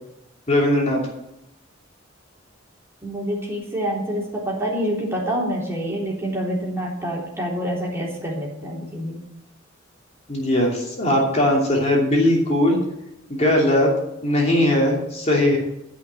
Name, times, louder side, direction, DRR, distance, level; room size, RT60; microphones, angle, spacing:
voice 1, 0.5-1.0 10.3-12.8 13.3-13.9 14.2-15.6, left 1 dB, 35° left, -2 dB, 2.8 m, -19 dB
voice 2, 3.0-9.2, equal, 15° right, -3 dB, 3.5 m, -27 dB
13.0 x 6.0 x 8.9 m, 0.86 s
head